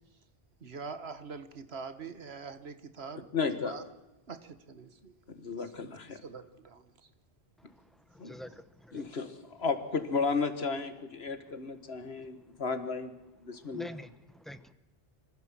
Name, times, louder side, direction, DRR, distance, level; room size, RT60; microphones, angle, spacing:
voice 1, 0.6-3.3 3.6-3.8 4.3-5.1 5.7-5.9 6.2-6.8, right 5 dB, 85° right, 10 dB, 1.7 m, -44 dB
voice 2, 3.3-3.7 5.4-6.2 8.2-8.4 8.9-13.1 13.4-13.9, left 4 dB, 80° left, 9 dB, 1.9 m, -33 dB
voice 3, 8.1-9.0 13.6-14.7, equal, ahead, 11 dB, 0.9 m, -46 dB
25.0 x 15.5 x 7.5 m, 1.0 s
omnidirectional pair, 1.0 m